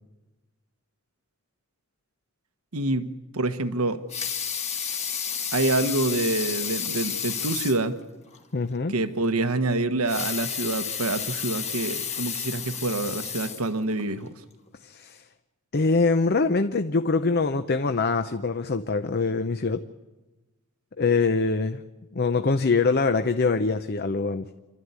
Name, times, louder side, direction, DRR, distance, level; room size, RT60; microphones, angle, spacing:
voice 1, 2.7-4.0 5.5-8.0 8.9-14.3, right 2 dB, 90° right, 1.3 m, -27 dB
Water tap faucet / Sink (filling or washing) / Liquid, 3.9-7.9 8.3-8.4 8.7-8.8 9.9-14.1 14.7-14.8, left 7 dB, 30° left, 1.6 m, -31 dB
voice 2, 8.5-8.9 14.8-15.2 15.7-19.8 21.0-21.8 22.1-24.5, left 4 dB, 50° left, 0.7 m, -24 dB
27.5 x 13.0 x 9.6 m
head